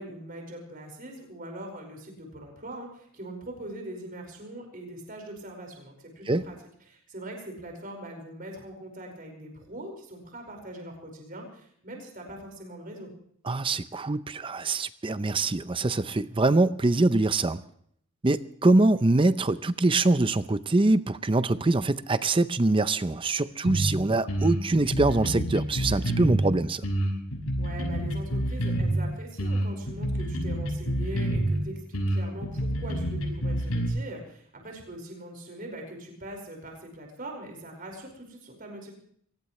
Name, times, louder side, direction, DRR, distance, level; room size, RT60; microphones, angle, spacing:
voice 1, 0.0-6.6 6.9-13.1 27.6-38.9, right 1 dB, 40° right, 2 dB, 5.2 m, -41 dB
voice 2, 13.5-17.6 18.2-26.8, right 2 dB, 25° right, 13 dB, 0.5 m, -24 dB
sound 1, 23.7-23.9 24.3-26.5 26.8-29.0 29.4-31.6 31.9-33.9, right 1 dB, 90° left, 6.1 m, -27 dB
23.0 x 19.0 x 3.2 m, 0.64 s
head